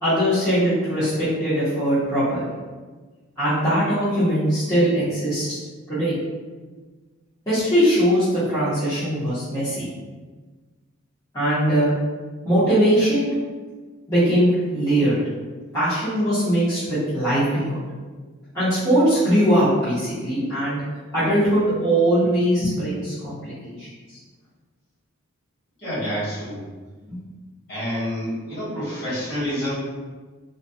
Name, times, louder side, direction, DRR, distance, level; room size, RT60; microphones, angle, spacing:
voice 1, 0.0-2.4 3.4-5.6 5.9-6.2 7.5-9.9 11.3-11.9 12.4-13.3 14.1-15.2 15.7-17.8 18.5-20.8 21.1-23.9 27.1-27.2, equal, 20° left, -15 dB, 0.8 m, -21 dB
voice 2, 25.8-26.6 27.7-29.7, equal, 50° left, -11 dB, 1.4 m, -28 dB
2.6 x 2.2 x 2.2 m, 1.4 s
head